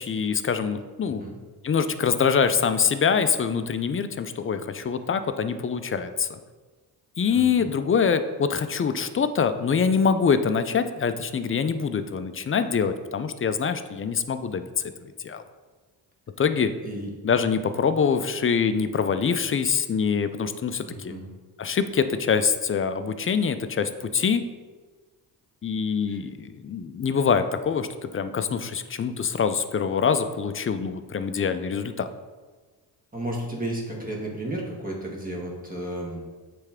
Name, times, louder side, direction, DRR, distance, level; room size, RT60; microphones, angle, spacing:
voice 1, 0.0-1.2 1.6-6.3 7.2-14.6 15.2-15.4 16.4-16.7 17.2-21.1 21.6-24.4 25.6-27.9 28.1-32.1, left 6 dB, 30° left, 10 dB, 0.5 m, -24 dB
voice 2, 1.0-1.4 7.3-7.7 16.8-17.1 20.9-21.3 26.1-26.2 33.1-36.3, right 1 dB, 20° right, -3 dB, 1.8 m, -33 dB
7.9 x 3.4 x 3.6 m, 1.3 s
cardioid pair, 60°, 43 cm